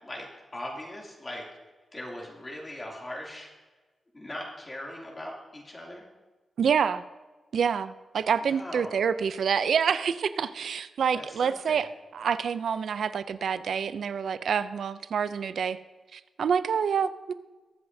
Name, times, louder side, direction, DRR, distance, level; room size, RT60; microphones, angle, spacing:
voice 1, 0.0-1.4 1.9-3.5 4.1-6.0 8.4-9.0 11.1-11.8, left 1 dB, 20° left, -2 dB, 2.6 m, -40 dB
voice 2, 6.6-7.0 7.5-15.8 16.1-17.3, right 7 dB, 75° right, 14 dB, 0.4 m, -27 dB
22.0 x 7.8 x 2.7 m, 1.3 s
wide cardioid pair, 135°, 0 cm